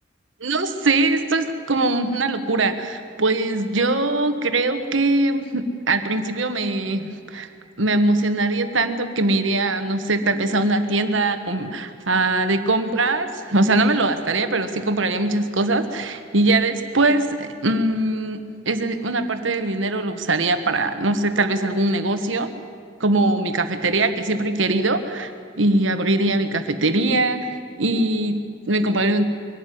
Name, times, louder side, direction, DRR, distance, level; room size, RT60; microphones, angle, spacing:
voice 1, 0.4-7.5 7.8-22.5 23.0-25.3 25.6-29.2, right 2 dB, 75° right, 8 dB, 1.4 m, -21 dB
22.5 x 12.5 x 9.5 m, 2.2 s
head